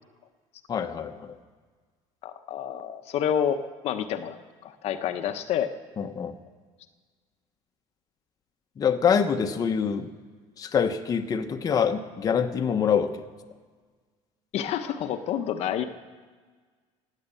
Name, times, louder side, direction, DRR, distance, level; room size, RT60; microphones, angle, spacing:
voice 1, 0.7-1.3 6.0-6.3 8.8-10.1 10.6-13.2, left 7 dB, 30° left, 6 dB, 1.0 m, -25 dB
voice 2, 2.2-5.7 14.5-15.8, left 9 dB, 50° left, 8 dB, 0.9 m, -29 dB
16.0 x 10.0 x 8.5 m, 1.5 s
cardioid pair, 145°, 13 cm